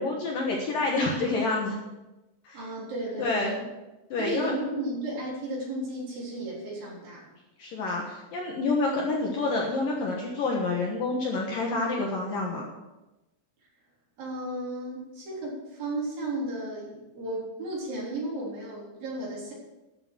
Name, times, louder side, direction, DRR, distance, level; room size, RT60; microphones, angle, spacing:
voice 1, 0.0-1.8 2.4-2.6 3.2-3.6 4.1-4.5 7.6-12.7, left 3 dB, 60° left, -1 dB, 2.5 m, -28 dB
voice 2, 2.5-3.7 4.2-7.3 14.2-19.5, right 1 dB, 50° right, -5 dB, 5.3 m, -34 dB
12.5 x 7.8 x 6.3 m, 1.0 s
omnidirectional pair, 5.2 m